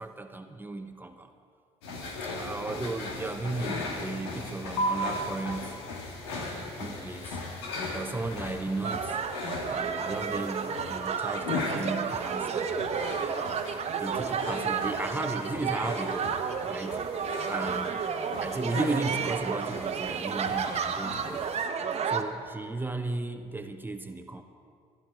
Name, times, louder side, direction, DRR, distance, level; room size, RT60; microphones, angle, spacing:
voice 1, 0.0-1.3 2.2-5.8 6.3-7.4 7.9-9.2 9.7-12.9 14.0-17.0 17.5-18.0 18.4-21.5 22.1-24.4, right 2 dB, 15° right, 6 dB, 1.0 m, -35 dB
sound 1, 1.8-21.7, left 2 dB, 90° left, 1.9 m, -37 dB
sound 2, 8.8-22.2, right 6 dB, 50° right, 1.2 m, -31 dB
23.5 x 11.0 x 4.7 m, 2.3 s
supercardioid pair, 65°, 14 cm